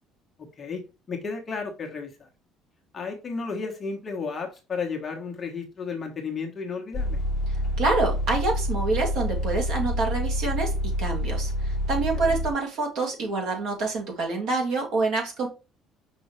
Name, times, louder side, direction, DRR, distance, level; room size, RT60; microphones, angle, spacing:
voice 1, 0.6-2.3 2.9-7.2 12.2-12.4, left 5 dB, 20° left, 1 dB, 1.2 m, -33 dB
sound 1, 6.9-12.5, equal, 25° right, 2.8 m, -27 dB
voice 2, 7.5-15.5, right 3 dB, 55° right, 1 dB, 2.3 m, -27 dB
6.1 x 5.4 x 3.1 m, 0.30 s
cardioid pair, 180°, 0 cm